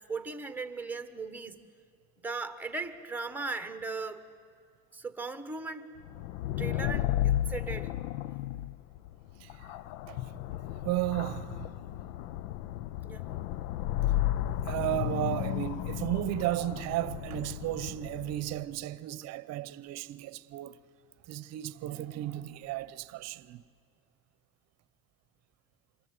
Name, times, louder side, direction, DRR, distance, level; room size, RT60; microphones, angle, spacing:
voice 1, 0.1-1.6 2.2-4.2 4.9-5.9 6.6-7.9 13.0-13.3, right 4 dB, 5° right, 1.3 m, -37 dB
sound 1, 6.0-18.6, left 13 dB, 75° left, 0.6 m, -33 dB
voice 2, 9.4-9.7 10.0-10.4 10.7-12.0 14.5-20.8 21.3-23.6, right 15 dB, 45° right, 0.9 m, -34 dB
27.0 x 22.5 x 9.5 m
cardioid pair, 160°, 36 cm